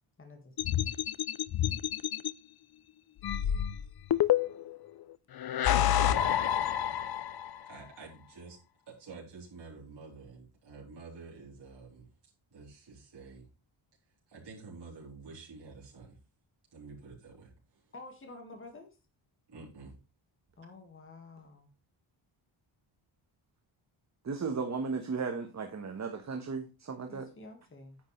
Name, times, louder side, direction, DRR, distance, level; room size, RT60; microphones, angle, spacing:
voice 1, 0.2-0.5 17.9-18.9 20.6-21.7 27.1-28.0, left 2 dB, 25° left, 3 dB, 1.9 m, -49 dB
sound 1, 0.6-2.3 3.2-4.8 5.4-7.6, left 11 dB, 50° left, 0.5 m, -28 dB
voice 2, 7.7-8.6 8.9-12.1 12.5-13.5 14.3-16.2 16.7-17.8 19.5-20.0, right 4 dB, 55° right, -4 dB, 3.8 m, -49 dB
voice 3, 24.2-27.3, right 4 dB, 35° right, 5 dB, 1.3 m, -35 dB
9.9 x 8.2 x 3.2 m, 0.29 s
wide cardioid pair, 165°, 48 cm